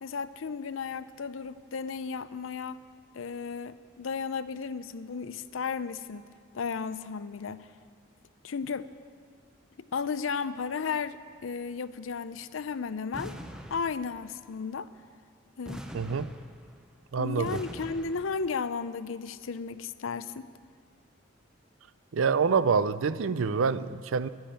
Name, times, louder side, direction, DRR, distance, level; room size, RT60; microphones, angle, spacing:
voice 1, 0.0-2.8 3.1-7.7 8.4-8.9 9.9-13.4 13.7-14.9 15.6-15.9 17.2-20.5, left 5 dB, 80° left, 14 dB, 0.5 m, -34 dB
sound 1, 13.1-14.4 15.6-16.9 17.4-18.6, equal, 5° right, 0.7 m, -43 dB
voice 2, 15.9-16.3 17.1-17.6 22.1-24.3, right 5 dB, 80° right, 16 dB, 0.5 m, -26 dB
12.0 x 10.5 x 8.7 m, 2.1 s
head